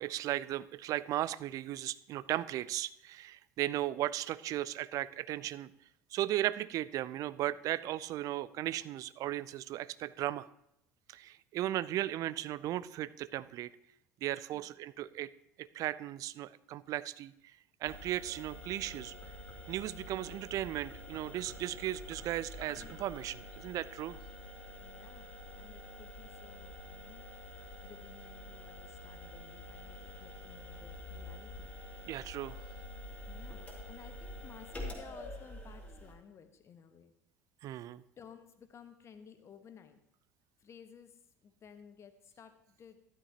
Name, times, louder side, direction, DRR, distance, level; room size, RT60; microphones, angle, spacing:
voice 1, 0.0-5.7 6.1-10.5 11.1-13.7 14.2-15.3 15.6-17.6 17.8-19.1 19.7-24.2 32.1-32.6 37.6-38.0, right 14 dB, 45° right, 17 dB, 0.4 m, -36 dB
sound 1, 17.8-36.2, left 1 dB, 15° left, 2.7 m, -47 dB
voice 2, 24.8-27.2 27.8-31.8 33.2-37.1 38.2-40.0 40.6-43.0, left 7 dB, 35° left, 8 dB, 1.2 m, -56 dB
13.5 x 11.5 x 2.9 m, 0.78 s
figure-of-eight pair, 65°, 8 cm